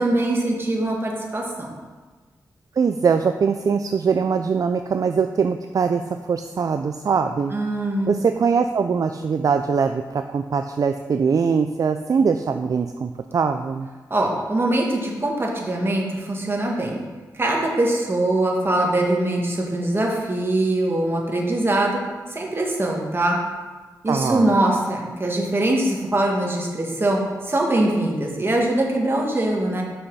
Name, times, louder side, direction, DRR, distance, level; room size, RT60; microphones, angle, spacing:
voice 1, 0.0-1.7 7.5-8.1 14.1-17.0 17.3-22.0 22.3-23.4 24.0-29.8, right 1 dB, 30° right, -1 dB, 1.8 m, -22 dB
voice 2, 2.8-7.5 8.1-13.9 24.1-24.5, right 5 dB, 55° right, 7 dB, 0.4 m, -22 dB
6.4 x 5.6 x 5.5 m, 1.3 s
cardioid pair, 75°, 7 cm